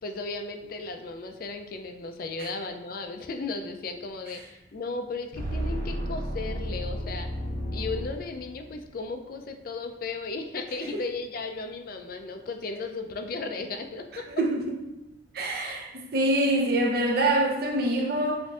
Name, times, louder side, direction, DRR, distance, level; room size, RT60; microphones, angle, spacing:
voice 1, 0.0-7.3 7.7-14.3 15.6-15.9, left 3 dB, 50° left, 6 dB, 0.4 m, -35 dB
sound 1, 5.3-8.8, equal, 80° right, 1.4 m, -32 dB
voice 2, 14.4-14.8 15.3-18.4, right 1 dB, 55° right, 2 dB, 0.6 m, -25 dB
7.3 x 2.6 x 2.4 m, 0.94 s
head